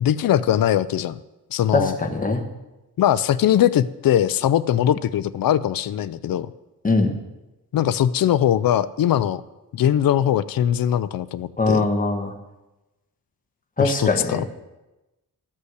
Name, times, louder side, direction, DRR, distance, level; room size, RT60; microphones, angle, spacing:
voice 1, 0.0-1.2 1.5-2.0 3.0-6.5 7.7-9.4 9.7-11.8 13.8-14.4, left 10 dB, 65° left, 14 dB, 0.5 m, -21 dB
voice 2, 1.7-2.4 6.8-7.2 11.6-12.3 13.8-14.4, left 3 dB, 20° left, 4 dB, 1.2 m, -21 dB
13.0 x 5.5 x 8.0 m, 1.0 s
wide cardioid pair, 175°, 37 cm